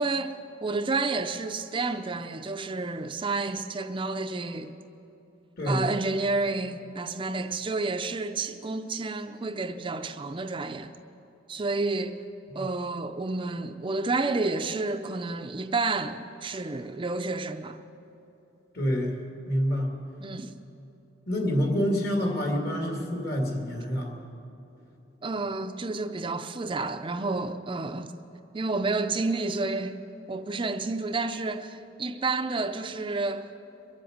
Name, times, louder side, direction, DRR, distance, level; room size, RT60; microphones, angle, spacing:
voice 1, 0.0-4.7 5.6-10.9 11.5-12.2 12.5-17.8 20.2-20.5 25.2-28.1 28.5-30.0 30.3-33.5, right 3 dB, 25° right, 0.5 m, -30 dB
voice 2, 18.8-19.2 19.5-19.9 21.3-24.1, equal, 55° left, 2.3 m, -27 dB
22.5 x 7.7 x 8.0 m
head